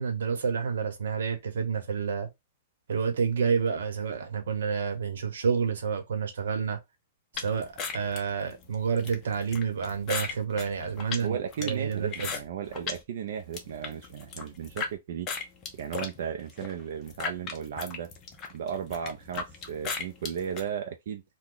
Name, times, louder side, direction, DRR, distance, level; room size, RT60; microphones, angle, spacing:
voice 1, 0.0-2.3 2.9-6.8 7.3-12.3, right 6 dB, 85° right, 0.9 m, -29 dB
sound 1, 7.3-13.0 13.4-14.9 15.3-20.6, left 5 dB, 20° left, 0.6 m, -37 dB
voice 2, 11.2-15.3 15.7-18.1 18.5-21.2, right 8 dB, 55° right, 0.5 m, -35 dB
2.9 x 2.2 x 3.8 m
hypercardioid pair, 170°, 0 cm